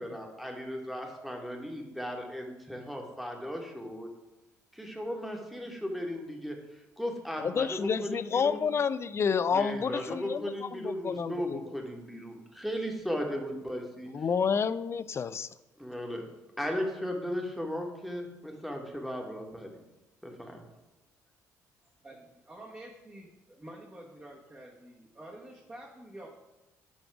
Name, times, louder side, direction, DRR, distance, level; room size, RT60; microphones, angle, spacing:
voice 1, 0.0-4.1 4.7-8.6 9.5-14.1 15.8-16.2 16.6-19.8 20.2-20.6, equal, ahead, 1 dB, 1.5 m, -36 dB
voice 2, 7.4-11.6 14.1-15.5, left 6 dB, 30° left, 15 dB, 0.4 m, -29 dB
voice 3, 22.0-26.3, right 1 dB, 20° right, -3 dB, 1.3 m, -48 dB
10.5 x 3.5 x 4.8 m, 1.0 s
figure-of-eight pair, 45°, 9 cm